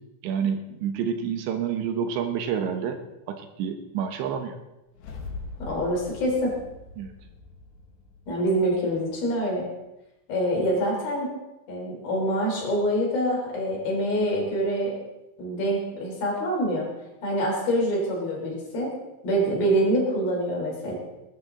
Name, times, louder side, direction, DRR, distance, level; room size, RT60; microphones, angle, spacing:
voice 1, 0.2-3.0 3.3-4.6 7.0-7.1, right 7 dB, 75° right, 7 dB, 3.1 m, -28 dB
sound 1, 4.9-9.2, left 3 dB, 70° left, 4.0 m, -42 dB
voice 2, 5.6-6.6 8.3-9.7 10.3-11.4 11.7-15.0 15.4-16.9 17.2-19.0 19.2-20.9, equal, 55° left, -1 dB, 5.1 m, -25 dB
19.5 x 13.0 x 3.8 m, 0.98 s
omnidirectional pair, 5.3 m